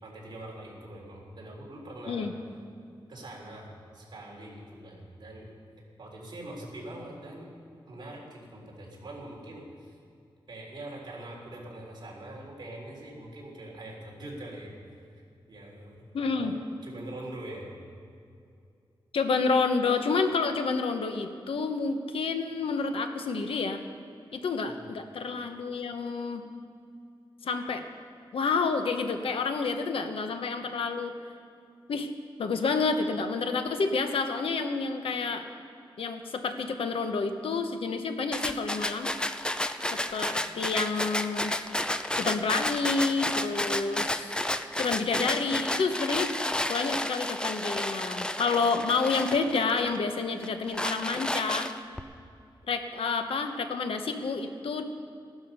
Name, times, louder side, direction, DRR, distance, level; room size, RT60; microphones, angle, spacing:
voice 1, 0.0-2.3 3.1-5.5 6.0-7.5 7.9-10.0 10.5-15.2 15.5-16.0 16.3-17.7 24.6-24.9, right 1 dB, 55° right, -3 dB, 3.8 m, -43 dB
voice 2, 16.1-16.5 19.1-23.8 24.3-26.4 27.4-27.8 28.3-31.1 31.9-32.1 32.4-35.4 36.0-39.1 39.9-41.5 42.1-44.4 44.8-46.3 46.7-51.7 52.7-54.8, left 4 dB, 85° left, 7 dB, 1.0 m, -29 dB
sound 1, 38.3-50.0 50.4-52.0, left 1 dB, 10° left, 0.5 m, -31 dB
15.0 x 12.0 x 5.5 m, 2.5 s
wide cardioid pair, 135°, 9 cm